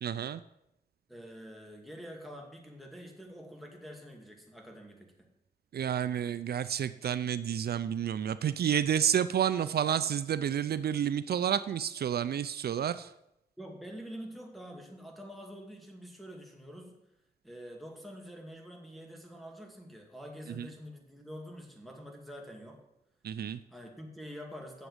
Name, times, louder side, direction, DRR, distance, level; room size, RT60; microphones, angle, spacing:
voice 1, 0.0-0.4 5.7-13.1 20.6-20.7 23.2-23.6, right 9 dB, 75° right, 13 dB, 0.4 m, -30 dB
voice 2, 1.1-5.3 13.6-17.0 17.4-22.8 23.7-24.9, equal, ahead, 0 dB, 2.3 m, -46 dB
8.1 x 7.3 x 8.0 m, 0.84 s
wide cardioid pair, 105°, 16 cm